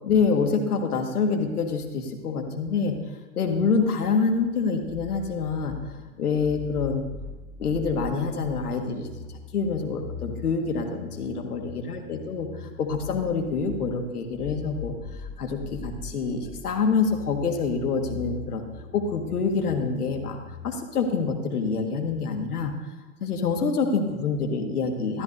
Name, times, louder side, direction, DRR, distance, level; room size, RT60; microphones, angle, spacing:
voice 1, 0.0-3.0 3.4-5.7 6.2-7.0 7.6-9.1 9.5-14.9 15.4-18.6 18.9-20.4 20.6-22.7 23.2-25.2, left 5 dB, 85° left, 4 dB, 1.7 m, -26 dB
sound 1, 4.9-20.8, left 6 dB, 65° left, 2.4 m, -41 dB
14.0 x 13.5 x 2.6 m, 1.2 s
hypercardioid pair, 100°, 45 cm